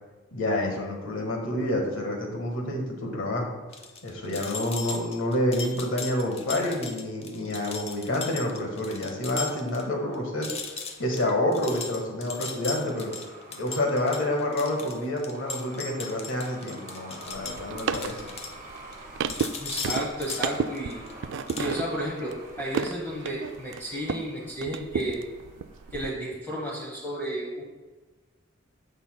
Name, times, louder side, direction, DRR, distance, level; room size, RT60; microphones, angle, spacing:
voice 1, 0.3-3.5 4.0-13.1 13.5-18.2, left 1 dB, 70° left, 1 dB, 1.6 m, -28 dB
sound 1, 3.7-9.8 10.1-10.2 10.4-19.0 19.3-21.1 21.5-21.7, left 4 dB, 30° left, 0.7 m, -38 dB
Truck, 8.7-26.1, right 1 dB, 40° right, 1.4 m, -48 dB
sound 2, 17.3-24.3 24.6-26.1, right 6 dB, 65° right, 0.3 m, -33 dB
voice 2, 19.6-21.0 21.6-25.2 25.9-27.6, equal, 10° left, -4 dB, 1.1 m, -32 dB
13.5 x 5.6 x 2.3 m, 1.3 s
head